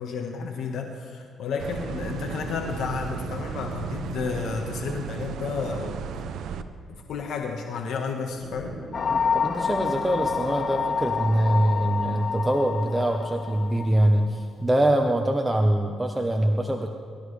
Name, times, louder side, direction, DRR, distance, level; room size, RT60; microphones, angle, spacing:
voice 1, 0.0-6.0 6.9-8.7, left 5 dB, 75° left, 2 dB, 1.5 m, -31 dB
sound 1, 1.6-6.6, right 6 dB, 75° right, 0.8 m, -34 dB
sound 2, 8.3-9.9, right 3 dB, 55° right, 1.8 m, -43 dB
sound 3, 8.9-14.4, left 6 dB, 45° left, 1.4 m, -28 dB
voice 2, 9.1-16.9, right 1 dB, 10° right, 2 dB, 1.1 m, -23 dB
23.5 x 13.5 x 3.4 m, 2.3 s
cardioid pair, 90°, 0 cm